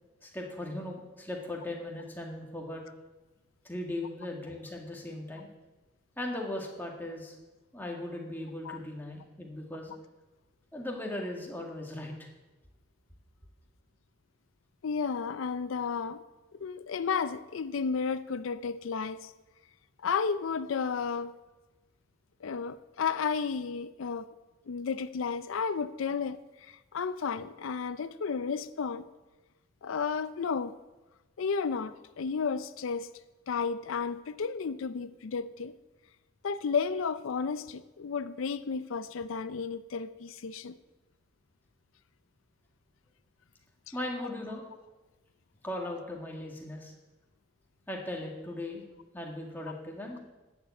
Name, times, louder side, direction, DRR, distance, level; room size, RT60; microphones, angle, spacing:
voice 1, 0.2-2.8 3.6-5.5 6.2-7.4 7.7-9.9 10.7-12.2 43.9-44.7 45.6-46.9 47.9-48.8 49.1-50.2, left 1 dB, 10° left, -1 dB, 1.9 m, -38 dB
voice 2, 14.8-16.2 16.5-19.3 20.0-21.3 22.4-24.3 24.7-29.1 29.8-30.7 31.4-33.1 33.5-35.7 36.4-40.8, left 5 dB, 85° left, 14 dB, 0.5 m, -32 dB
12.0 x 7.3 x 8.3 m, 1.1 s
head